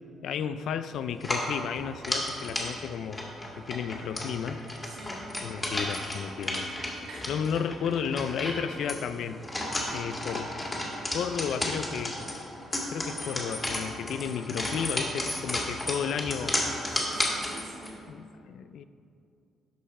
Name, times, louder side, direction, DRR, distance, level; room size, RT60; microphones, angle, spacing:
voice 1, 0.2-3.2 3.6-4.6 5.4-6.7 7.3-9.4 9.9-10.5 11.1-12.2 12.9-16.6 18.1-18.8, left 7 dB, 75° left, 12 dB, 0.4 m, -33 dB
sound 1, 1.2-17.9, left 1 dB, 25° left, 2.0 m, -33 dB
voice 2, 4.9-5.3 7.1-7.3 16.9-18.0, right 2 dB, 80° right, -3 dB, 1.9 m, -46 dB
11.0 x 5.7 x 4.2 m, 2.4 s
cardioid pair, 90°, 0 cm